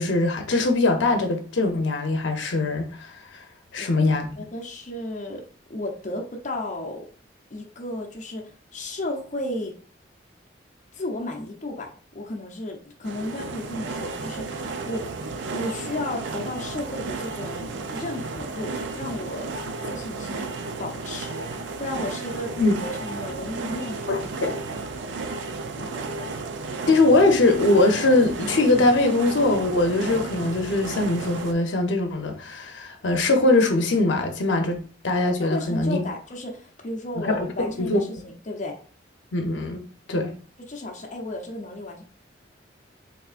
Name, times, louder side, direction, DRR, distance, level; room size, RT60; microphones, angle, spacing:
voice 1, 0.0-3.4 3.7-4.3 22.6-22.7 24.1-24.5 26.9-34.8 35.0-36.0 37.2-37.5 37.8-38.0 39.3-39.8 40.1-40.3, left 2 dB, 75° left, 0.7 m, -21 dB
voice 2, 3.8-4.1 4.4-5.4 5.7-7.0 7.5-9.7 10.9-11.9 12.1-15.1 15.5-19.5 19.8-22.5 22.8-24.2 25.7-26.2 35.4-38.7 40.7-42.0, left 1 dB, 40° left, 0.6 m, -33 dB
sound 1, 13.0-31.5, right 3 dB, 70° right, 0.4 m, -33 dB
3.5 x 3.4 x 2.4 m
head